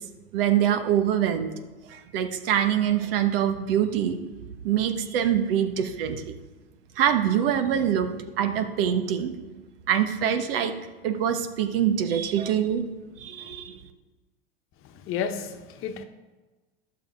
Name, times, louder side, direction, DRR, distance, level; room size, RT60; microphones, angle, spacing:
voice 1, 0.3-1.5 1.9-4.2 4.6-6.3 7.0-9.4 9.9-10.7 11.0-12.8 13.2-13.8, right 9 dB, 65° right, 8 dB, 1.2 m, -24 dB
voice 2, 14.9-16.0, left 7 dB, 45° left, 7 dB, 1.1 m, -31 dB
11.5 x 6.8 x 5.3 m, 1.2 s
hypercardioid pair, 100°, 30 cm